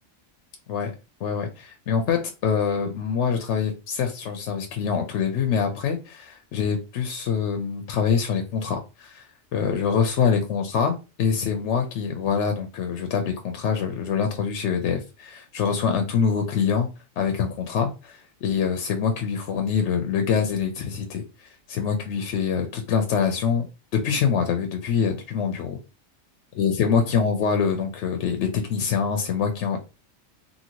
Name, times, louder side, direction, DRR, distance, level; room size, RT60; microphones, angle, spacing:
voice 1, 1.2-9.2 9.5-16.9 17.2-23.7 23.9-25.8 26.5-29.8, left 6 dB, 65° left, 5 dB, 0.8 m, -25 dB
2.7 x 2.7 x 2.8 m, 0.29 s
omnidirectional pair, 1.4 m